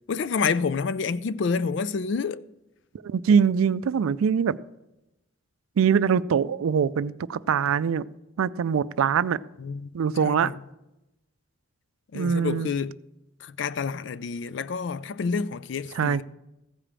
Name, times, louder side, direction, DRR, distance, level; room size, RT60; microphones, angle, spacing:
voice 1, 0.1-2.4 9.6-9.9 10.2-10.6 12.1-13.0 13.4-16.2, left 5 dB, 60° left, 0.3 m, -28 dB
voice 2, 3.0-4.6 5.8-8.1 8.4-9.4 9.9-10.5 12.1-12.7 15.9-16.2, right 7 dB, 90° right, 0.4 m, -23 dB
15.0 x 5.0 x 7.3 m
head